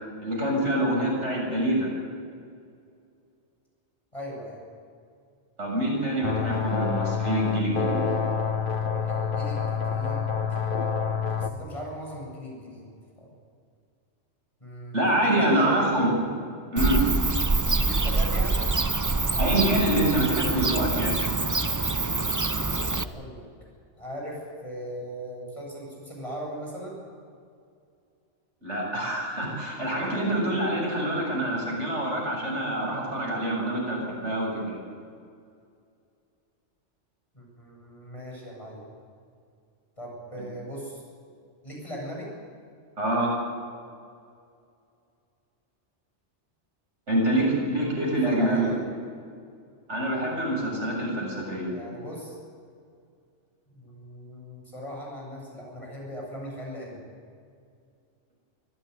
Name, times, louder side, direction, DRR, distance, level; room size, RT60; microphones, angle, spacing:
voice 1, 0.2-1.9 5.6-8.0 14.9-16.1 16.7-17.0 19.4-21.2 28.6-34.8 43.0-43.3 47.1-48.7 49.9-51.8, right 1 dB, 75° right, -2 dB, 7.6 m, -26 dB
voice 2, 4.1-4.6 9.0-10.2 10.6-10.7 11.0-12.8 13.2-13.3 14.6-15.9 17.7-18.7 22.3-23.4 24.0-27.0 37.3-38.8 40.0-41.0 41.6-42.3 47.1-48.0 48.2-48.9 51.7-52.4 53.7-57.0, equal, 25° left, -2 dB, 7.8 m, -39 dB
sound 1, 6.2-11.5, left 6 dB, 45° left, 1.3 m, -27 dB
Bird / Cricket, 16.8-23.0, right 3 dB, 20° right, 0.6 m, -25 dB
24.0 x 15.5 x 9.6 m, 2.3 s
omnidirectional pair, 1.2 m